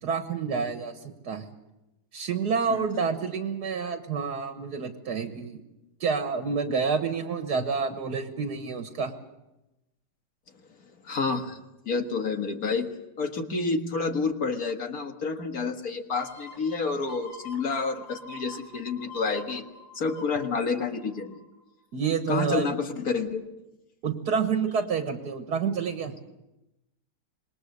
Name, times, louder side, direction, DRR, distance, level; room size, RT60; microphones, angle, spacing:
voice 1, 0.0-1.5 2.1-5.6 6.0-9.1 21.9-22.8 24.0-26.1, right 5 dB, 65° right, 7 dB, 1.9 m, -28 dB
voice 2, 2.7-3.0 11.0-11.6 11.9-12.9 13.2-19.7 19.9-21.4 22.3-23.4, left 4 dB, 55° left, 5 dB, 2.1 m, -29 dB
sound 1, 16.1-21.6 22.0-22.1, left 2 dB, 85° left, 4.1 m, -46 dB
26.5 x 21.0 x 6.7 m, 0.98 s
omnidirectional pair, 1.9 m